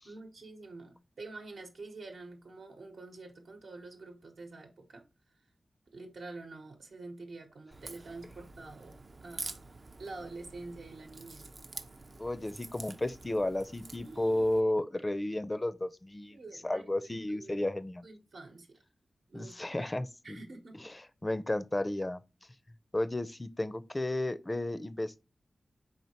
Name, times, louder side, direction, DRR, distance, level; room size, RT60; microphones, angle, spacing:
voice 1, 0.0-5.0 5.9-9.6 10.0-11.5 14.0-14.6 16.3-17.6 18.0-18.8 19.3-19.5 20.2-20.8, right 3 dB, 85° right, 1.0 m, -47 dB
Crack, 7.7-14.6, right 3 dB, 55° right, 0.4 m, -47 dB
voice 2, 12.2-16.4 16.6-18.0 19.3-20.4 20.8-22.2 22.9-25.2, left 1 dB, 25° left, 0.4 m, -33 dB
4.3 x 3.2 x 2.9 m
cardioid pair, 60°, 0 cm